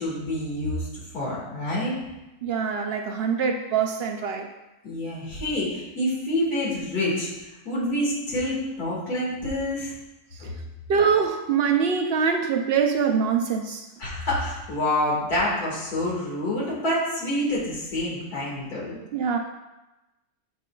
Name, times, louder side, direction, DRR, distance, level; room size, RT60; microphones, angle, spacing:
voice 1, 0.0-2.0 4.8-9.9 10.4-10.5 14.0-19.0, left 1 dB, 85° left, -5 dB, 2.5 m, -27 dB
voice 2, 2.4-4.5 10.3-10.5 10.9-13.9 19.1-19.4, right 6 dB, 80° right, 4 dB, 0.5 m, -24 dB
7.6 x 7.4 x 2.3 m, 1.0 s
omnidirectional pair, 1.6 m